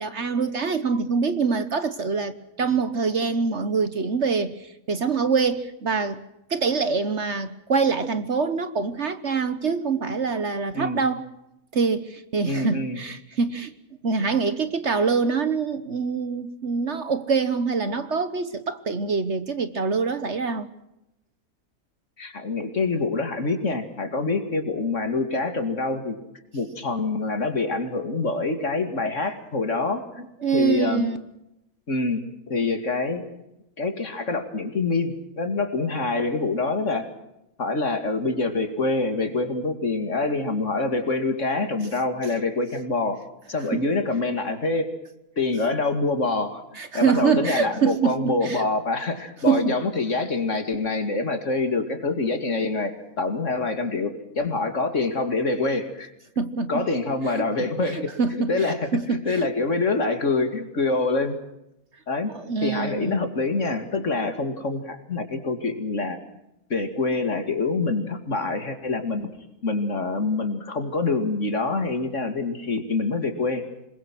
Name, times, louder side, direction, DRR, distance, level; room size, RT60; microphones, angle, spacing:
voice 1, 0.0-4.5 4.9-6.2 6.5-11.2 11.7-13.7 14.0-20.7 30.4-31.2 43.7-43.8 46.8-48.6 49.4-49.8 56.4-56.9 57.4-57.5 57.9-59.5 62.3-63.3, right 5 dB, 50° right, 1.4 m, -25 dB
voice 2, 12.4-13.0 22.2-26.2 26.5-31.1 31.9-33.2 33.8-37.1 37.6-43.2 43.5-44.9 45.4-46.6 46.9-56.1 56.7-61.4 62.1-62.3 62.6-66.2 66.7-69.3 69.6-73.6, left 3 dB, 50° left, 2.7 m, -26 dB
27.0 x 21.5 x 6.2 m
omnidirectional pair, 1.6 m